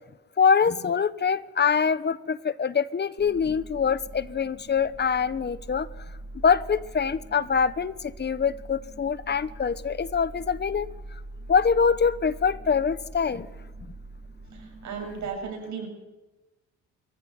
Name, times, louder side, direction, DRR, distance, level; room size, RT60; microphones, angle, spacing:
voice 1, 0.4-5.9 6.4-10.9 11.5-13.5 13.9-14.0, left 6 dB, 35° left, 16 dB, 1.2 m, -24 dB
sound 1, 3.2-15.3, right 2 dB, 35° right, 6.9 m, -43 dB
voice 2, 14.5-15.9, right 5 dB, 70° right, 2 dB, 7.7 m, -35 dB
24.5 x 14.5 x 9.4 m, 1.1 s
cardioid pair, 90°, 30 cm